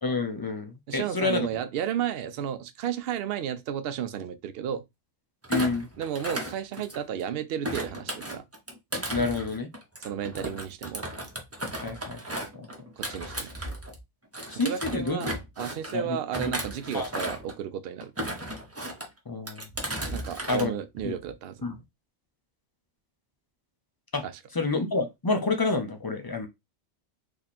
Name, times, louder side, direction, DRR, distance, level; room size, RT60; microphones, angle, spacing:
voice 1, 0.0-1.5 5.5-5.9 9.1-9.7 11.8-12.7 13.3-13.4 14.5-15.2 15.9-16.5 16.9-17.1 19.3-19.6 20.5-20.7 21.0-21.1 21.6-21.8 24.1-24.2 24.5-26.5, left 3 dB, 35° left, 0.3 m, -29 dB
voice 2, 0.9-4.8 6.0-8.4 10.0-11.1 13.0-13.5 14.6-15.3 15.6-18.3 20.1-21.6 24.2-24.3, right 9 dB, 60° right, 0.7 m, -33 dB
Thump thud, 5.4-7.2 7.6-14.0 14.3-15.9 16.3-17.5 18.0-19.1 19.5-20.7 21.0-21.3, right 1 dB, 15° right, 0.6 m, -35 dB
3.1 x 2.8 x 4.1 m
omnidirectional pair, 1.3 m